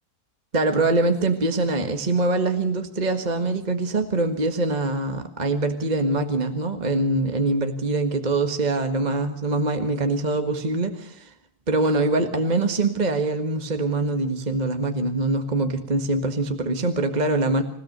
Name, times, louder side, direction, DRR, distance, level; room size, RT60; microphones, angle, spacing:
voice 1, 0.5-11.3 11.7-17.6, right 2 dB, 30° right, 7 dB, 1.7 m, -23 dB
27.0 x 17.0 x 6.6 m, 0.64 s
omnidirectional pair, 1.6 m